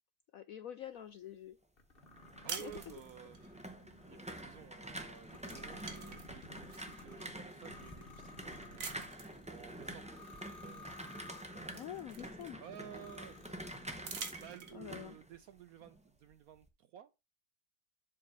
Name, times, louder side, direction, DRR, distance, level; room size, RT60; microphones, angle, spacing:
voice 1, 0.3-1.6 2.4-3.0 11.7-13.1 14.7-15.2, left 11 dB, 75° left, 0.8 m, -47 dB
sound 1, 1.8-12.1 12.6-14.3, left 2 dB, 35° left, 1.4 m, -56 dB
sound 2, 2.0-16.0 16.3-16.7, right 1 dB, 10° right, 0.3 m, -48 dB
voice 2, 2.4-3.6 4.1-9.0 9.5-11.3 11.6-11.8 12.6-13.9 14.4-17.3, right 10 dB, 70° right, 0.9 m, -54 dB
sound 3, 2.5-3.5 4.9-5.1 5.4-7.0 7.6-7.7 8.8-9.4 10.8-10.9 11.3-12.8 13.9-15.0, right 5 dB, 50° right, 1.6 m, -46 dB
7.7 x 3.7 x 6.0 m
omnidirectional pair, 2.0 m